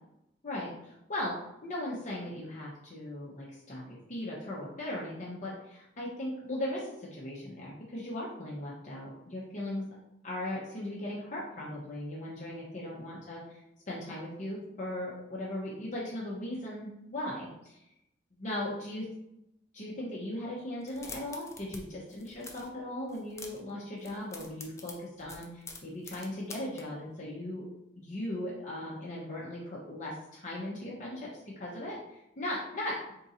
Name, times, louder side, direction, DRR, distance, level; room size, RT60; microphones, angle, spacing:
voice 1, 0.4-1.3 1.6-9.8 10.2-17.8 18.4-19.1 19.7-27.7 28.0-33.0, left 1 dB, 40° left, -5 dB, 0.8 m, -38 dB
sound 1, 20.8-21.8 22.1-22.7 23.1-23.7 24.0-26.8, left 3 dB, 15° left, 0.5 m, -46 dB
3.8 x 2.6 x 4.2 m, 0.83 s
head